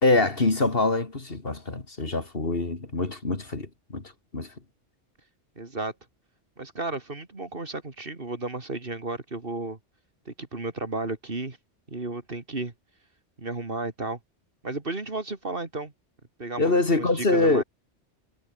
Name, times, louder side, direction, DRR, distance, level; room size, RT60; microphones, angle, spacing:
voice 1, 0.0-4.0 4.3-4.5 16.6-17.6, left 2 dB, 50° left, 2.9 m, -24 dB
voice 2, 5.6-5.9 6.6-9.8 10.3-11.6 11.9-12.7 13.4-14.2 14.6-15.9 16.4-17.6, right 2 dB, 50° right, 2.8 m, -33 dB
omnidirectional pair, 1.2 m